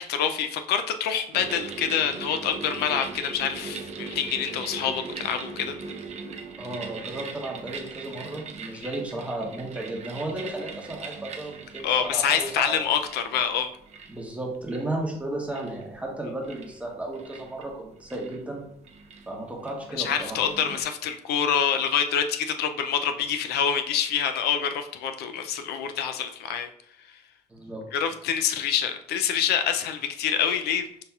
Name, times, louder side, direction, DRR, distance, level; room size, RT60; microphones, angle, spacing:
voice 1, 0.0-5.8 11.8-13.7 20.0-26.7 27.9-30.9, left 8 dB, 75° left, 8 dB, 0.4 m, -26 dB
sound 1, 1.3-20.8, right 5 dB, 40° right, 0.5 m, -41 dB
voice 2, 6.6-12.8 14.1-18.6 19.3-20.4 27.5-27.8, right 1 dB, 10° right, -1 dB, 0.9 m, -34 dB
5.5 x 2.7 x 2.3 m, 0.72 s
cardioid pair, 110°, 17 cm